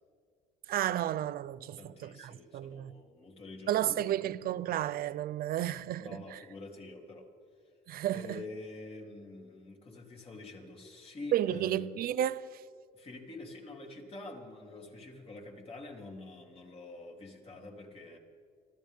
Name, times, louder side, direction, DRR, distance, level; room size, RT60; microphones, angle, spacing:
voice 1, 0.7-2.9 3.7-6.4 7.9-8.4 11.3-12.6, right 12 dB, 60° right, 0.6 m, -32 dB
voice 2, 1.8-4.0 6.0-7.3 8.1-11.9 12.9-18.2, left 2 dB, 35° left, 3.2 m, -46 dB
26.0 x 14.5 x 3.7 m
cardioid pair, 110°, 17 cm